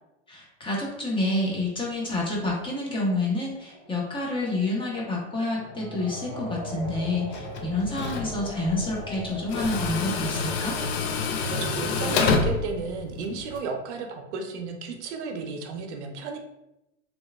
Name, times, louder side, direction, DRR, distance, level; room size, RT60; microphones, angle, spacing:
voice 1, 0.3-10.8, left 2 dB, 15° left, -3 dB, 0.6 m, -28 dB
sound 1, 1.6-12.4, equal, 5° right, 1.1 m, -42 dB
Tools, 7.3-13.6, left 4 dB, 65° left, 0.5 m, -28 dB
voice 2, 11.5-16.4, right 4 dB, 70° right, 4 dB, 0.6 m, -33 dB
2.9 x 2.4 x 2.2 m, 0.90 s
hypercardioid pair, 110°, 36 cm